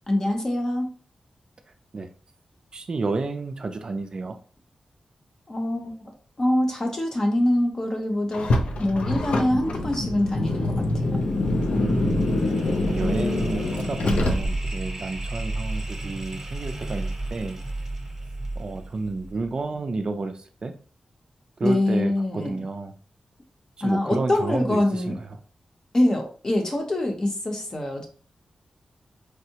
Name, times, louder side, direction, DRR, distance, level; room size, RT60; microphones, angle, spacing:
voice 1, 0.1-0.9 5.5-6.1 6.4-8.5 8.8-11.2 21.6-22.6 23.8-25.2 25.9-28.0, left 1 dB, 30° left, 2 dB, 0.7 m, -24 dB
voice 2, 2.7-4.4 11.7-12.4 12.9-17.6 18.6-20.7 21.6-22.9 23.8-25.3, right 3 dB, 40° right, 6 dB, 0.3 m, -31 dB
Car, 8.3-14.8, left 2 dB, 75° left, 0.5 m, -25 dB
sound 1, 10.6-19.7, right 2 dB, 25° right, 0.9 m, -33 dB
4.4 x 2.0 x 2.8 m, 0.40 s
wide cardioid pair, 155°, 2 cm